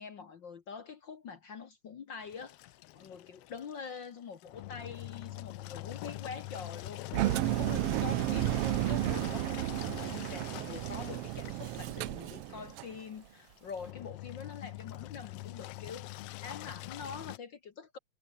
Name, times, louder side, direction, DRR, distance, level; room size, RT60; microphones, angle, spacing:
voice 1, 0.0-18.0, left 5 dB, 50° left, 1.5 m, -45 dB
Engine, 2.2-17.4, left 17 dB, 80° left, 1.3 m, -45 dB
Engine 2, 7.1-13.0, right 16 dB, 85° right, 1.3 m, -32 dB
omnidirectional pair, 3.4 m